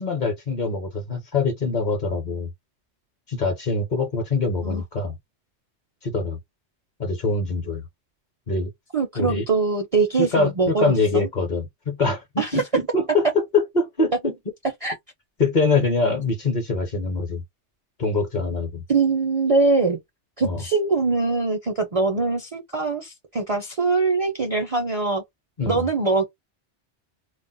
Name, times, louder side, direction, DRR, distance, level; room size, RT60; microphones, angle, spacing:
voice 1, 0.0-2.5 3.3-5.2 6.0-6.4 7.0-7.8 8.5-8.7 9.2-9.4 10.2-14.3 15.4-17.4 18.0-18.8 20.4-20.6 25.6-25.9, left 3 dB, 45° left, 0.8 m, -24 dB
voice 2, 8.9-11.3 12.4-12.5 14.8-14.9 18.9-20.0 20.4-25.2 25.7-26.3, right 3 dB, 45° right, 0.5 m, -22 dB
2.3 x 2.1 x 3.8 m
omnidirectional pair, 1.2 m